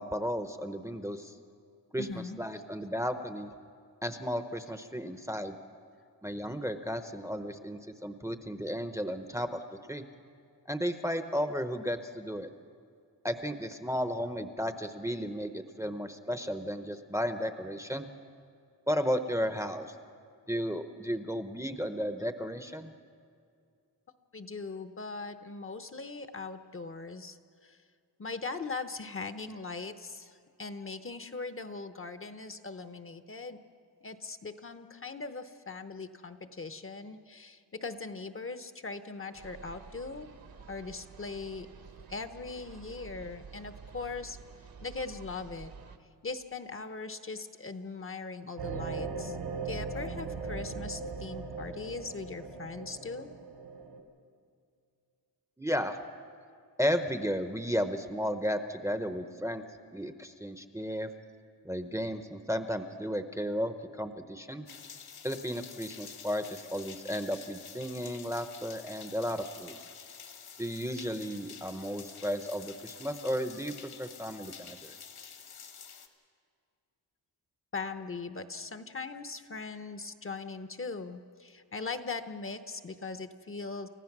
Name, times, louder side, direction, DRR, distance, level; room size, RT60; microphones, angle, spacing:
voice 1, 0.0-1.3 1.9-2.1 2.4-3.5 4.0-5.6 6.2-9.6 9.9-10.0 10.7-12.5 13.2-18.1 18.9-19.9 20.5-22.9 55.6-56.0 56.8-59.6 59.9-61.1 61.6-64.7 65.2-69.7 70.6-74.9, equal, 5° right, 8 dB, 0.8 m, -34 dB
voice 2, 2.0-2.4 24.3-27.4 27.6-27.8 28.2-33.6 34.0-40.3 40.7-44.4 44.8-45.7 46.2-49.4 49.6-53.3 77.7-83.9, left 4 dB, 30° left, 9 dB, 0.8 m, -40 dB
sound 1, 39.3-46.0, right 6 dB, 55° right, 1.2 m, -50 dB
sound 2, 48.6-54.0, right 4 dB, 80° right, 2.9 m, -39 dB
sound 3, 64.7-76.1, left 7 dB, 65° left, 1.7 m, -48 dB
29.5 x 15.0 x 6.0 m, 2.4 s
wide cardioid pair, 130°, 42 cm